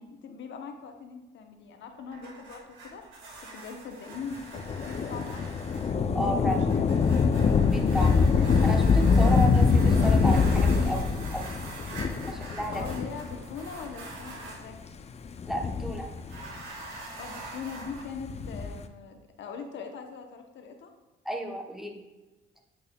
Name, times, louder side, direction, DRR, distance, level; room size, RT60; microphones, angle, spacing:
voice 1, 0.0-3.0 3.4-5.6 6.3-6.7 12.4-14.8 16.9-20.9, left 5 dB, 70° left, 4 dB, 0.8 m, -41 dB
sound 1, 1.9-14.6 16.2-18.0, right 3 dB, 80° right, 1.6 m, -44 dB
Thunder / Rain, 4.5-13.5 14.3-14.4 15.3-16.6 18.1-18.8, left 5 dB, 35° left, 0.4 m, -24 dB
voice 2, 6.1-6.6 7.7-11.5 12.3-13.0 15.5-16.1 21.2-22.0, equal, ahead, 2 dB, 0.8 m, -33 dB
8.5 x 5.4 x 2.2 m, 1.1 s
cardioid pair, 90°, 20 cm